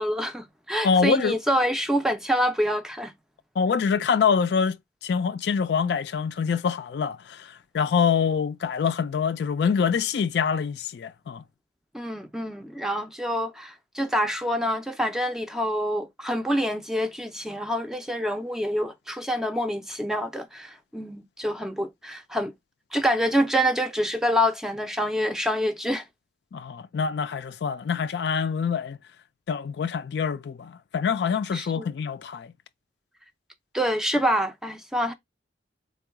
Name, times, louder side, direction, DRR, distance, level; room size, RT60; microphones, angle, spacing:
voice 1, 0.0-3.1 11.9-22.5 22.9-26.0 31.5-31.8 33.7-35.1, equal, 5° right, 0.4 m, -26 dB
voice 2, 0.8-1.4 3.6-11.4 26.5-29.0 29.5-32.5, left 6 dB, 60° left, 0.3 m, -25 dB
3.7 x 2.3 x 4.5 m
head